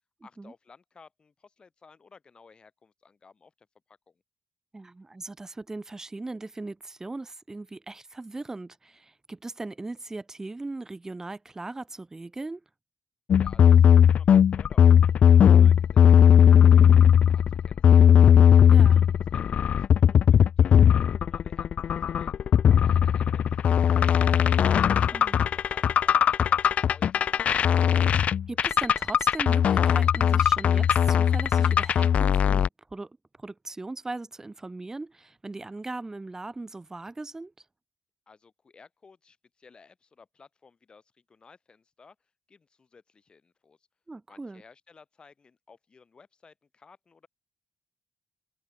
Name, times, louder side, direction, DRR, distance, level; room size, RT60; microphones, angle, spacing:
voice 1, 0.2-4.2 13.4-18.3 18.6-22.3 22.7-24.6 25.1-27.8 38.3-42.2 42.5-43.8 44.3-47.3, left 5 dB, 40° left, 6.2 m, -56 dB
voice 2, 4.7-12.6 18.7-19.0 25.1-25.4 28.5-32.6 32.9-33.1 33.4-37.5 44.1-44.6, right 2 dB, 20° right, 2.7 m, -38 dB
sound 1, 13.3-32.7, left 8 dB, 65° left, 0.4 m, -18 dB
cardioid pair, 90°, 2 cm